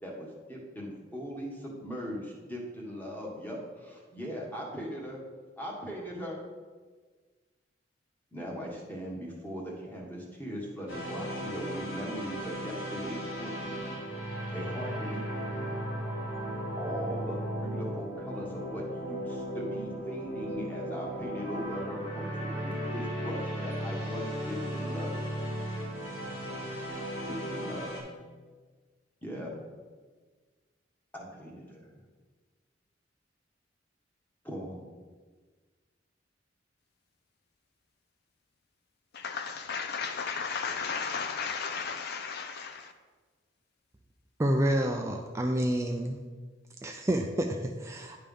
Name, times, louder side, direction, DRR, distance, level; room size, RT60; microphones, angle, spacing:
voice 1, 0.0-5.2 5.6-6.4 8.3-13.7 14.1-14.2 14.5-15.6 16.8-25.2 27.2-27.9 29.2-29.6 31.1-31.8 34.4-34.9, equal, 10° left, 1.4 m, -39 dB
sound 1, 10.9-28.0, equal, 90° left, 2.5 m, -36 dB
voice 2, 39.2-42.8, left 5 dB, 55° left, 0.4 m, -34 dB
voice 3, 44.4-46.2 46.8-48.2, right 1 dB, 15° right, 0.4 m, -28 dB
10.0 x 3.4 x 5.4 m
head